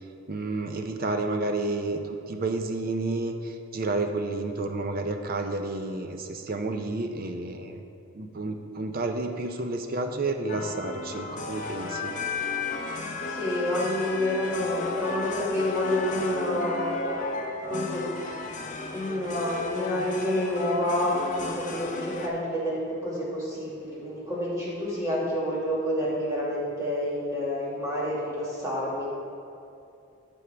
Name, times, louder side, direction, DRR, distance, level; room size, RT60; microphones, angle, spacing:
voice 1, 0.3-7.8 8.1-12.1, right 2 dB, 45° right, 5 dB, 0.6 m, -30 dB
sound 1, 10.5-22.3, left 3 dB, 35° left, 0.7 m, -34 dB
voice 2, 13.3-16.9 17.7-18.4 18.9-29.0, left 1 dB, 15° right, -7 dB, 1.9 m, -28 dB
14.0 x 5.4 x 3.4 m, 2.7 s
head